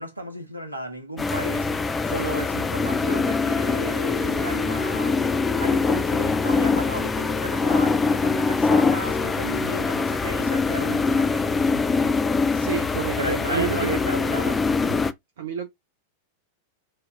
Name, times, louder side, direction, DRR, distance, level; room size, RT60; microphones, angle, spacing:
voice 1, 0.0-1.7 2.0-11.5 11.7-12.1 13.2-14.6 14.9-15.0, equal, 85° right, 0.9 m, -34 dB
sound 1, 1.2-15.1, left 4 dB, 15° left, 0.4 m, -23 dB
voice 2, 12.5-14.0 15.4-15.7, right 7 dB, 60° right, 0.4 m, -29 dB
3.3 x 2.4 x 3.1 m
figure-of-eight pair, 90°, 0 cm